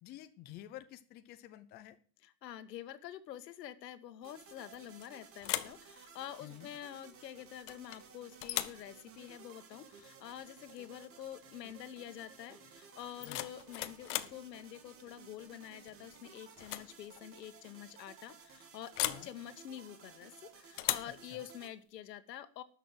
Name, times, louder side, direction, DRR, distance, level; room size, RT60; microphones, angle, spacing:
voice 1, 0.0-2.0 6.4-6.7 13.2-13.4 19.0-19.3 21.3-21.4, left 13 dB, 20° left, 10 dB, 0.7 m, -50 dB
voice 2, 2.2-22.6, left 11 dB, 90° left, 11 dB, 1.7 m, -47 dB
sound 1, 4.2-21.7, right 6 dB, 25° right, 2.2 m, -57 dB
sound 2, 4.7-5.1 5.4-5.8 7.7-8.0 8.4-8.8 10.7-10.9 11.2-11.5 13.0-14.4 15.9-16.2 16.6-16.9 17.2-17.3 19.0-19.3 20.8-21.2, left 16 dB, 50° left, 1.0 m, -37 dB
12.5 x 6.7 x 7.9 m, 0.43 s
supercardioid pair, 160°, 48 cm